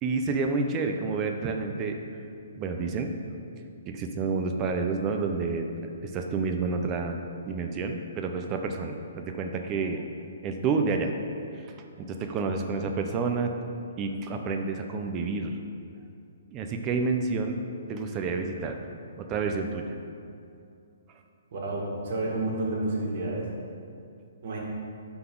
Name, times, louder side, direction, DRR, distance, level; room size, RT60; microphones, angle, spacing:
voice 1, 0.0-2.0 2.5-3.1 3.9-5.7 6.0-7.2 7.5-10.0 10.4-11.1 11.5-11.6 12.0-13.5 14.0-15.6 16.5-17.6 17.9-18.8 19.2-19.9, right 4 dB, 25° right, 4 dB, 0.5 m, -29 dB
voice 2, 21.5-23.5 24.4-24.6, right 2 dB, 55° right, -3 dB, 1.8 m, -30 dB
11.5 x 4.0 x 3.8 m, 2.5 s
hypercardioid pair, 150°, 0 cm